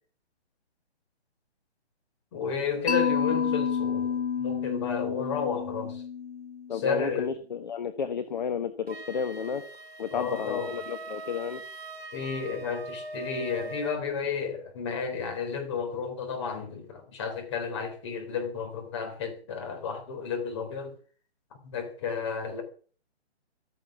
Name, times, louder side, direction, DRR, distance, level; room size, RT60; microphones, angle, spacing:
voice 1, 2.3-6.0 6.7-7.3 10.1-10.7 12.1-20.9 21.5-22.6, left 6 dB, 25° left, 3.8 m, -32 dB
Mallet percussion, 2.9-6.9, left 7 dB, 75° left, 1.3 m, -29 dB
voice 2, 6.7-9.6 10.0-11.6, left 7 dB, 40° left, 1.3 m, -32 dB
Wind instrument woodwind instrument, 8.9-14.1, right 2 dB, 65° right, 4.8 m, -41 dB
14.5 x 14.0 x 6.0 m
hypercardioid pair, 170°, 34 cm